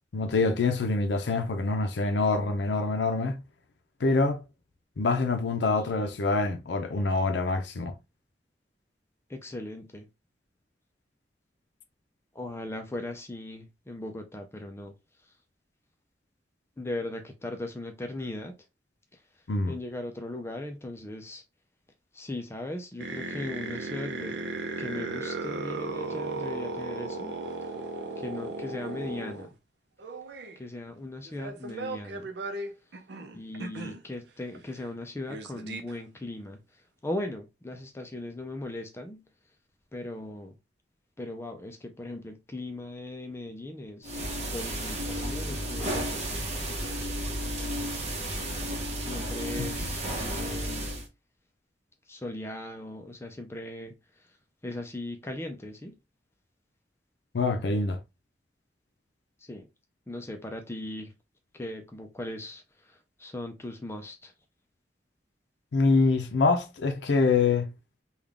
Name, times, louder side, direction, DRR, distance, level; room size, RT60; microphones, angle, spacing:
voice 1, 0.1-3.4 4.0-4.4 5.0-7.9 19.5-19.7 57.3-58.0 65.7-67.7, left 3 dB, 75° left, 0.5 m, -25 dB
voice 2, 9.3-10.1 12.3-15.4 16.8-18.5 19.1-21.4 22.1-24.5 24.8-27.4 28.2-29.5 30.6-32.3 33.3-39.2 39.9-40.6 41.2-44.2 44.5-46.5 48.9-50.1 50.3-50.9 52.1-54.4 54.6-56.0 59.4-59.7 60.1-61.1 61.5-64.3, left 1 dB, 15° left, 0.4 m, -38 dB
sound 1, 23.0-29.5 30.0-30.5 31.2-34.0 34.5-34.6 34.8-34.9 35.3-36.0, right 3 dB, 70° right, 0.6 m, -36 dB
sound 2, 44.0-51.1, right 1 dB, 40° right, 0.9 m, -32 dB
3.7 x 2.3 x 3.3 m
head